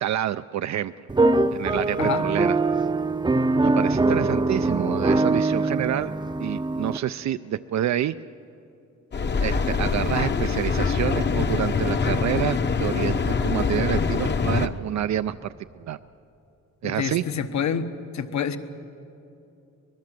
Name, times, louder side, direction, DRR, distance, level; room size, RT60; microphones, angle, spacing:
voice 1, 0.0-0.9 1.5-2.6 3.6-6.1 6.4-8.2 9.4-16.0 16.8-17.2, right 11 dB, 65° right, 11 dB, 0.4 m, -28 dB
sound 1, 1.1-7.0, right 2 dB, 15° right, 0.6 m, -22 dB
Mechanical fan, 9.1-14.7, left 5 dB, 35° left, 0.9 m, -24 dB
voice 2, 16.8-17.8 18.1-18.6, left 8 dB, 70° left, 9 dB, 1.2 m, -27 dB
24.5 x 20.5 x 7.6 m, 2.7 s
wide cardioid pair, 165°, 30 cm